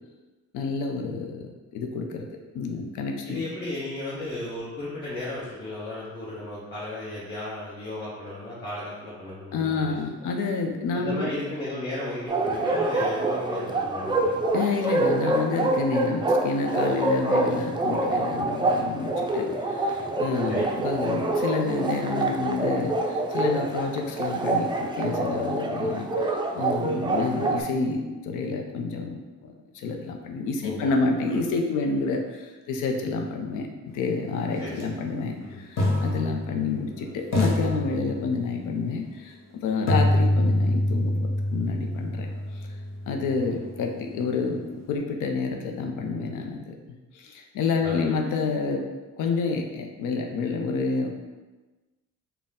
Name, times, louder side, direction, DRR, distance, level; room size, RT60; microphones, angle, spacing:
voice 1, 0.5-2.3 2.5-3.4 9.5-11.3 14.5-26.1 26.5-33.7 33.9-42.3 43.1-48.8 49.2-51.1, left 4 dB, 85° left, 3 dB, 0.6 m, -29 dB
voice 2, 3.2-10.0 10.9-14.4 20.5-20.7 26.9-27.1 30.6-30.9 31.2-31.4 34.6-34.9 35.4-35.6 43.4-43.6 47.8-48.1, left 1 dB, 35° left, -9 dB, 1.2 m, -35 dB
Bark, 12.3-27.6, right 2 dB, 15° right, 0.4 m, -26 dB
sound 1, 34.7-34.8 35.8-36.9 37.3-38.6 39.9-43.8, left 1 dB, 60° left, 1.0 m, -26 dB
4.1 x 2.2 x 3.6 m, 1.2 s
cardioid pair, 90°, 30 cm